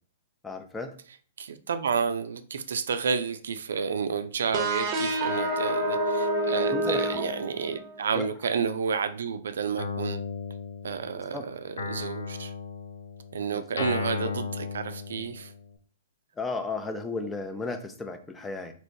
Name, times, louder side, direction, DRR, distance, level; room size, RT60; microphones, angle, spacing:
voice 1, 0.4-0.9 6.7-7.2 8.1-8.3 11.3-11.4 13.5-13.9 16.4-18.7, left 3 dB, 10° left, 6 dB, 0.4 m, -34 dB
voice 2, 1.4-10.2 10.8-12.5 13.3-15.5, right 6 dB, 75° right, 9 dB, 0.3 m, -30 dB
sound 1, 4.5-8.1, right 1 dB, 35° right, 0.7 m, -28 dB
Guitar, 9.8-11.3 11.8-15.7, left 4 dB, 80° left, 0.5 m, -35 dB
3.1 x 2.9 x 2.6 m, 0.43 s
hypercardioid pair, 125°, 0 cm